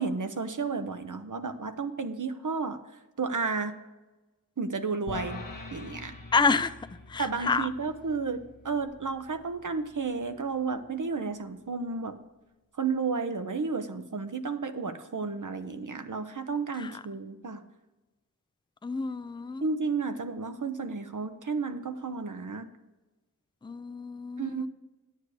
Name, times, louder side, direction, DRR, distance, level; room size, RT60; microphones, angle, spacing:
voice 1, 0.0-2.8 3.2-3.8 4.6-5.4 5.7-6.1 7.2-12.1 12.8-17.6 19.6-22.7 24.4-24.7, right 4 dB, 70° right, 8 dB, 0.8 m, -32 dB
sound 1, 5.1-11.4, left 2 dB, 80° left, 1.2 m, -45 dB
voice 2, 6.3-6.8 7.1-7.7 16.8-17.0 18.8-19.6 23.6-24.7, left 4 dB, 15° left, 13 dB, 0.4 m, -28 dB
9.2 x 8.1 x 4.9 m, 1.1 s
wide cardioid pair, 45°, 33 cm